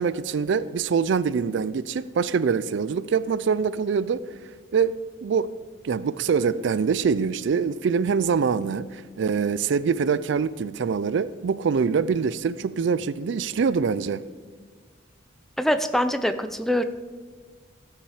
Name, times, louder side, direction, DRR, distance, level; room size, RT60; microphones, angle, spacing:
voice 1, 0.0-4.2 4.7-5.5 5.8-14.2, right 6 dB, 65° right, 0.4 m, -24 dB
voice 2, 15.6-16.8, equal, ahead, 0.4 m, -23 dB
15.0 x 5.7 x 5.0 m
head